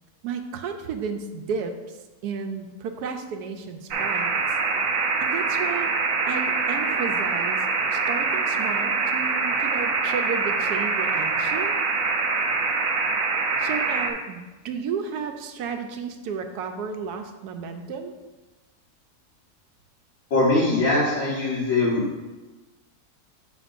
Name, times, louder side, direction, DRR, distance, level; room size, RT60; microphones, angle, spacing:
voice 1, 0.2-2.0 2.2-4.5 5.2-5.9 6.3-7.6 7.9-11.7 13.6-18.1, right 6 dB, 85° right, 6 dB, 1.2 m, -33 dB
sound 1, 3.9-14.1, right 4 dB, 65° right, 1.0 m, -24 dB
voice 2, 20.3-22.0, left 2 dB, 55° left, -8 dB, 1.5 m, -21 dB
8.0 x 5.7 x 2.5 m, 1.2 s
omnidirectional pair, 1.7 m